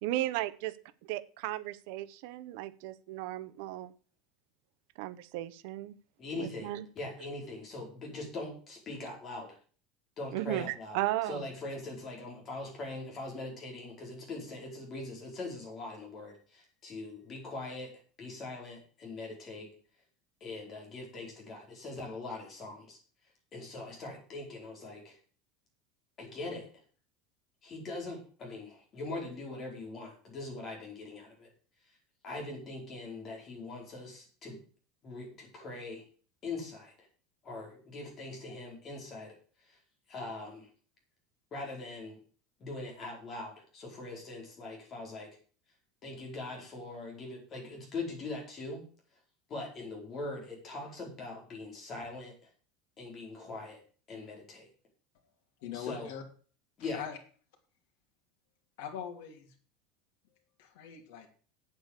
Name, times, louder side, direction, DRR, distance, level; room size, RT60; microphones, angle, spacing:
voice 1, 0.0-3.9 5.0-6.0 6.4-6.9 10.3-11.5, right 16 dB, 55° right, 15 dB, 0.8 m, -35 dB
voice 2, 6.2-9.6 10.2-11.0 11.3-17.9 18.2-19.7 20.4-23.0 23.5-25.2 26.2-26.7 27.6-31.5 32.2-34.6 35.0-36.0 36.4-37.1 37.4-39.3 39.6-39.8 40.1-40.7 41.5-42.2 42.6-45.4 46.0-48.8 49.5-52.5 53.0-53.8 54.1-54.7 55.7-56.1 56.8-57.0, left 2 dB, 25° left, 0 dB, 4.7 m, -42 dB
voice 3, 55.6-56.2 56.8-57.2 58.8-59.5 60.6-61.3, left 8 dB, 65° left, 2 dB, 2.9 m, -42 dB
8.3 x 8.1 x 8.1 m, 0.41 s
cardioid pair, 180°, 0 cm